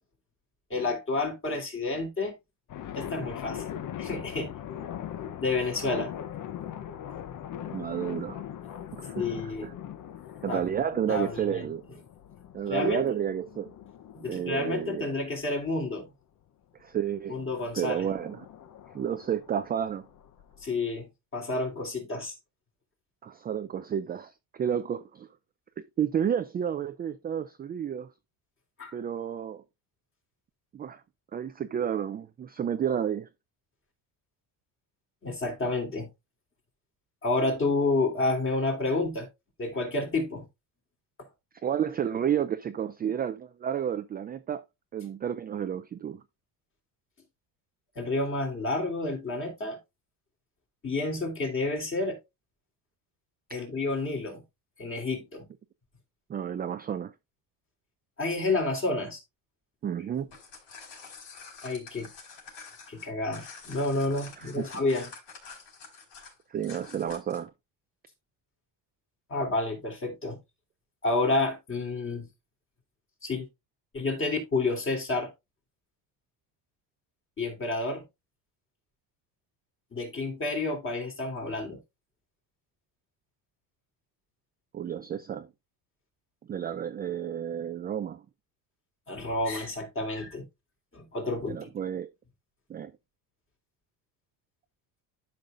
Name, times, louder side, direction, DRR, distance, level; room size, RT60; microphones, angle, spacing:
voice 1, 0.7-2.3 2.9-3.6 4.0-4.5 5.4-6.1 9.1-9.7 10.5-10.6 11.1-11.6 12.7-13.0 14.1-16.1 17.3-18.0 20.6-21.1 21.3-22.3 28.8-28.9 35.2-36.1 37.2-39.3 39.6-40.4 47.9-49.8 50.8-52.2 53.5-54.4 54.8-55.5 58.2-59.2 61.6-62.1 62.9-65.1 69.3-70.4 71.0-72.3 73.2-73.5 73.9-75.3 77.4-78.0 79.9-81.8 89.1-90.4 90.9-91.7, left 2 dB, 30° left, 3.2 m, -29 dB
sound 1, 2.7-15.7 17.1-20.7, left 10 dB, 45° left, 0.9 m, -41 dB
voice 2, 7.7-8.4 8.9-9.7 10.4-11.8 12.5-13.7 14.3-15.1 16.8-17.4 17.7-18.5 18.9-20.1 23.2-25.3 25.8-28.1 28.9-29.6 30.7-31.0 31.3-33.3 41.6-44.6 44.9-46.2 56.3-57.1 59.8-60.3 64.4-64.7 66.5-67.5 84.7-85.5 86.5-88.2 91.5-92.1 92.7-92.9, right 9 dB, 25° right, 0.4 m, -31 dB
sound 2, 60.1-67.5, left 5 dB, 75° left, 4.9 m, -47 dB
12.0 x 5.4 x 2.5 m
cardioid pair, 125°, 44 cm